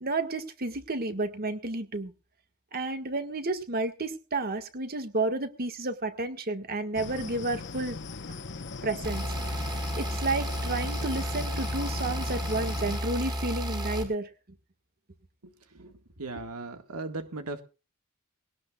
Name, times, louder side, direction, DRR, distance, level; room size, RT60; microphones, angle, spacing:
voice 1, 0.0-2.1 2.7-8.0 8.8-9.3 10.0-14.3, right 2 dB, 45° right, 8 dB, 1.7 m, -31 dB
sound 1, 6.9-13.0, left 4 dB, 55° left, 1.0 m, -40 dB
sound 2, 9.0-14.0, equal, 20° right, 4.2 m, -32 dB
voice 2, 16.2-17.6, right 3 dB, 90° right, 6 dB, 1.8 m, -37 dB
20.5 x 17.5 x 2.4 m, 0.33 s
head